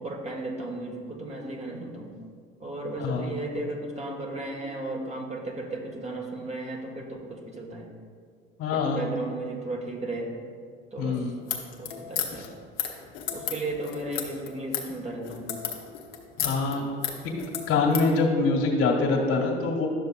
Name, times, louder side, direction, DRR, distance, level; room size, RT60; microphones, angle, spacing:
voice 1, 0.0-2.1 2.6-7.9 8.7-10.3 10.9-11.2 11.8-12.5 13.3-15.6, right 2 dB, 20° right, 1 dB, 1.2 m, -35 dB
voice 2, 3.0-3.4 8.6-9.1 11.0-11.4 12.4-12.5 16.4-16.9 17.7-19.9, left 3 dB, 50° left, 1 dB, 1.8 m, -24 dB
sound 1, 11.4-18.1, left 9 dB, 65° left, 1.1 m, -33 dB
11.5 x 6.6 x 2.3 m, 2.1 s
hypercardioid pair, 70°, 29 cm